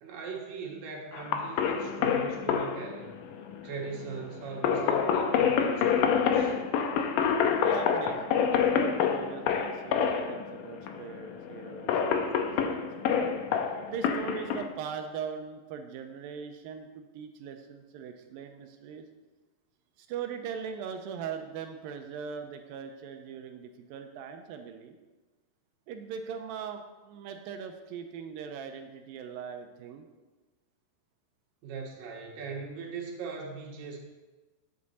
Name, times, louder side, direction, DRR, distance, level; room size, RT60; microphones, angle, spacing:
voice 1, 0.0-3.2 3.6-6.6 31.6-34.0, right 5 dB, 65° right, -1 dB, 3.0 m, -40 dB
sound 1, 1.1-14.7, left 7 dB, 90° left, 1.9 m, -27 dB
voice 2, 7.6-13.3 13.9-19.1 20.0-25.0 25.9-30.1, right 7 dB, 80° right, 6 dB, 2.1 m, -40 dB
9.6 x 8.5 x 4.1 m, 1.2 s
omnidirectional pair, 4.7 m